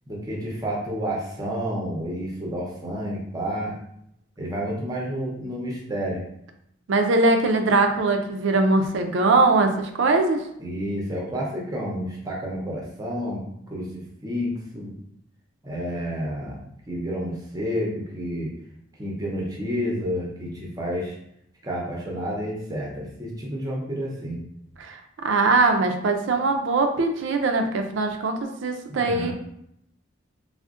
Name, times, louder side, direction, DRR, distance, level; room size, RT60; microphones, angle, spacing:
voice 1, 0.1-3.8 4.4-6.2 10.6-13.4 13.7-15.0 15.6-18.5 19.0-21.2 21.6-24.4 28.9-29.3, equal, 20° right, -3 dB, 0.6 m, -30 dB
voice 2, 6.9-10.4 24.8-29.3, right 3 dB, 65° right, 5 dB, 0.4 m, -21 dB
3.6 x 2.1 x 2.4 m, 0.76 s
head